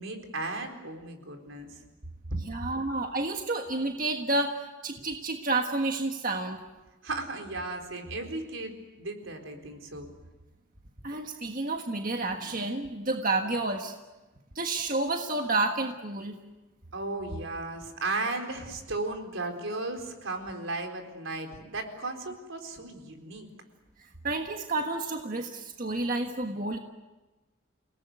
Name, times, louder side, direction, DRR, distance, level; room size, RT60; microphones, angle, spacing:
voice 1, 0.0-1.8 2.9-3.0 7.0-10.1 16.9-23.5, right 2 dB, 80° right, 5 dB, 4.2 m, -35 dB
voice 2, 2.5-4.6 4.8-6.6 11.0-13.9 14.5-16.4 24.2-26.8, right 2 dB, 45° right, 4 dB, 1.5 m, -30 dB
29.0 x 18.5 x 9.5 m, 1.1 s
head